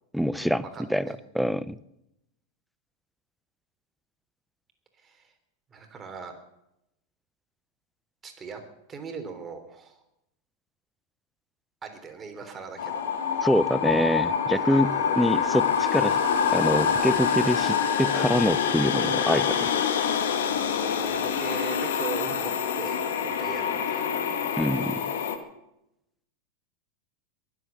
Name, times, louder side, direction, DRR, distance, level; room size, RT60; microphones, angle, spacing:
voice 1, 0.1-0.6 0.9-1.1 1.3-1.8 13.4-16.2 16.5-19.7 24.6-25.1, equal, ahead, 17 dB, 0.6 m, -25 dB
voice 2, 0.7-1.1 5.0-5.3 5.7-6.3 8.2-8.6 8.9-10.0 11.8-13.0 14.7-15.5 20.7-24.2, right 5 dB, 25° right, 5 dB, 3.5 m, -40 dB
sound 1, 12.8-25.4, left 7 dB, 65° left, 1.7 m, -26 dB
22.0 x 8.1 x 7.3 m, 0.86 s
hypercardioid pair, 95°, 0 cm